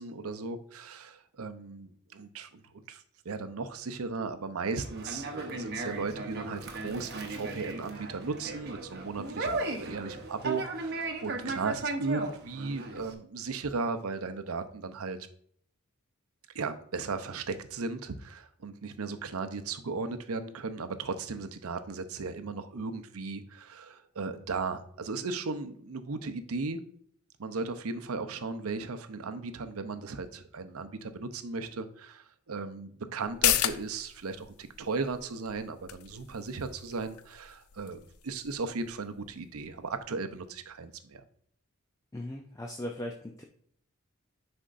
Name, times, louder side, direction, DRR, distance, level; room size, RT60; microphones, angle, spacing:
voice 1, 0.0-15.2 16.5-26.8 27.4-41.2, right 4 dB, 85° right, 9 dB, 0.6 m, -36 dB
Conversation, 4.8-13.1, right 2 dB, 50° right, 0.9 m, -36 dB
sound 1, 33.2-40.4 40.7-40.8, left 12 dB, 80° left, 0.4 m, -35 dB
voice 2, 42.1-43.4, left 1 dB, 15° left, 2 dB, 0.5 m, -38 dB
10.0 x 4.4 x 2.5 m, 0.64 s
head